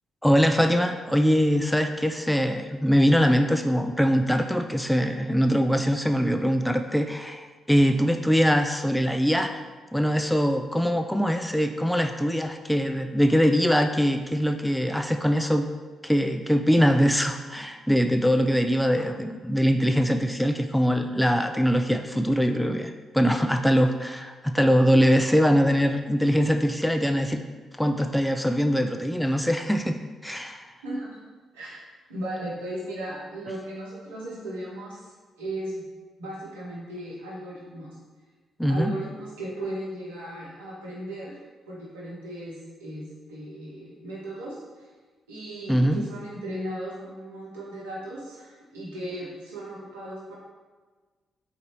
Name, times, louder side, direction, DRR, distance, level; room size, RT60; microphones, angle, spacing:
voice 1, 0.2-9.6 9.9-15.7 16.0-27.4 27.8-29.9 30.2-30.7 38.6-38.9 45.7-46.0, equal, 5° left, 6 dB, 0.3 m, -22 dB
voice 2, 30.8-31.2 31.5-31.8 32.1-35.8 36.2-38.0 38.7-44.9 45.3-50.3, right 1 dB, 85° right, -6 dB, 0.9 m, -36 dB
3.9 x 2.6 x 3.1 m, 1.4 s
hypercardioid pair, 40°, 0 cm